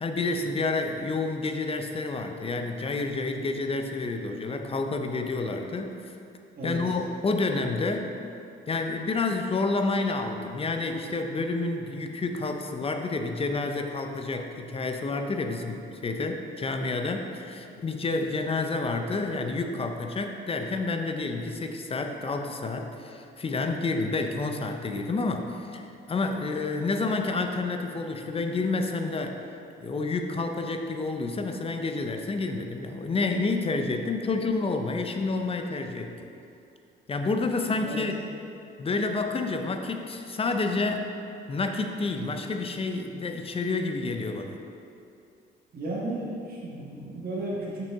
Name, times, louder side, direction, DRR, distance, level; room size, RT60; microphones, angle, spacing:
voice 1, 0.0-6.0 6.6-8.1 8.7-29.4 29.8-36.1 37.1-38.1 38.8-41.1 41.5-44.6, left 3 dB, 30° left, 5 dB, 0.6 m, -29 dB
voice 2, 45.7-47.8, right 1 dB, 50° right, -5 dB, 1.3 m, -34 dB
6.1 x 5.9 x 3.5 m, 2.7 s
cardioid pair, 90°, 20 cm